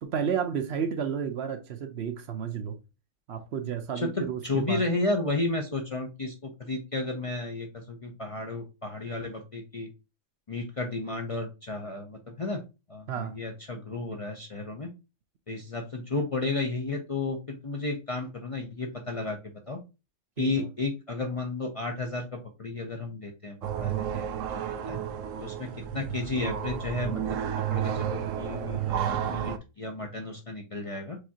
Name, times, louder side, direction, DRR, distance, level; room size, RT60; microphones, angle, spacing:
voice 1, 0.0-2.8 3.3-4.8 13.1-13.4 20.4-20.7, right 7 dB, 65° right, 0.9 m, -32 dB
voice 2, 4.0-9.9 10.5-12.6 12.9-14.9 15.5-19.4 19.7-19.8 20.4-25.0 25.4-25.7 25.9-27.2 27.7-31.2, left 3 dB, 35° left, 0.6 m, -33 dB
sound 1, 23.6-29.6, right 9 dB, 85° right, 1.0 m, -31 dB
4.9 x 3.5 x 2.8 m
omnidirectional pair, 1.3 m